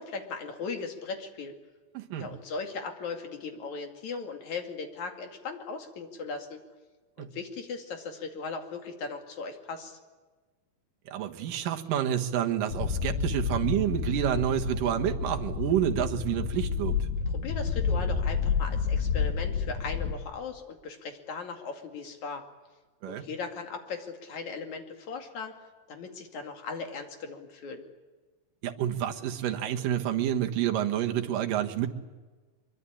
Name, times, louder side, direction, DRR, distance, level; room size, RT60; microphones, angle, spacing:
voice 1, 0.0-1.6 2.2-6.6 7.2-10.0 17.3-22.4 23.1-25.5 25.9-27.9, left 4 dB, 55° left, 4 dB, 3.5 m, -38 dB
voice 2, 1.9-2.3 7.2-7.3 11.1-17.1 23.0-23.3 28.6-31.9, right 11 dB, 70° right, 3 dB, 2.9 m, -29 dB
sound 1, 12.7-20.1, left 6 dB, 75° left, 3.0 m, -30 dB
23.5 x 23.0 x 8.7 m, 1.3 s
omnidirectional pair, 4.0 m